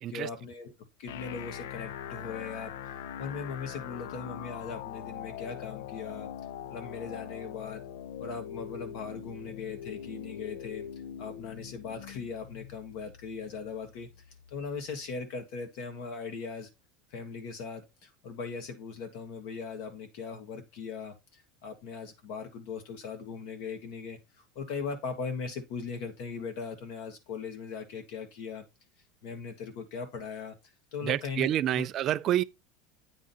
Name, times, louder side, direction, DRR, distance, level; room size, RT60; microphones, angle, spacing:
voice 1, 0.1-0.7 1.0-6.3 6.7-7.8 8.2-10.9 11.2-14.1 14.5-16.7 17.1-24.2 24.5-28.7 29.2-30.6 30.9-31.9, left 5 dB, 60° left, 1.5 m, -39 dB
sound 1, 1.1-15.0, left 9 dB, 85° left, 0.4 m, -42 dB
voice 2, 31.0-32.4, right 12 dB, 35° right, 0.3 m, -28 dB
9.0 x 3.6 x 4.1 m
supercardioid pair, 150°, 0 cm